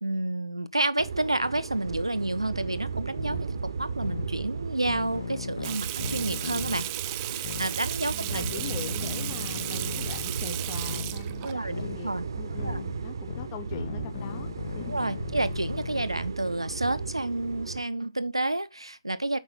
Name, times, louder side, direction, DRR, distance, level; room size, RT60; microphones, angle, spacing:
voice 1, 0.0-6.9 7.1-8.4 11.4-12.2 12.6-12.8 14.9-19.4, right 2 dB, 85° right, 0.9 m, -30 dB
sound 1, 1.0-17.8, right 5 dB, 55° right, 0.9 m, -36 dB
sound 2, 3.2-3.4 4.0-4.3 4.9-6.9 7.4-7.7 8.3-10.3 10.9-11.1 11.7-12.0 12.6-12.8 13.3-16.1, left 7 dB, 50° left, 0.4 m, -37 dB
Water tap faucet / Sink (filling or washing), 5.6-11.5, right 16 dB, 25° right, 0.6 m, -35 dB
voice 2, 8.1-15.0, left 11 dB, 25° left, 0.8 m, -42 dB
8.3 x 5.8 x 3.8 m
figure-of-eight pair, 135°, 3 cm